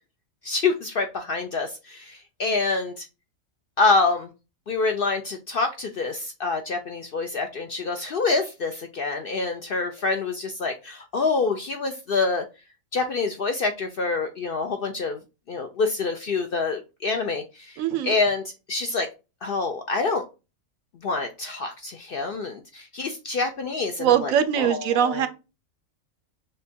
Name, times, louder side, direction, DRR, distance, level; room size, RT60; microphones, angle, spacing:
voice 1, 0.4-3.1 3.8-4.3 4.7-12.5 12.9-15.2 15.5-18.4 18.7-19.1 19.4-20.2 21.0-25.3, left 3 dB, 60° left, 0.6 m, -26 dB
voice 2, 17.8-18.1 24.0-25.3, right 9 dB, 80° right, 1.0 m, -22 dB
6.5 x 2.2 x 2.6 m
omnidirectional pair, 1.4 m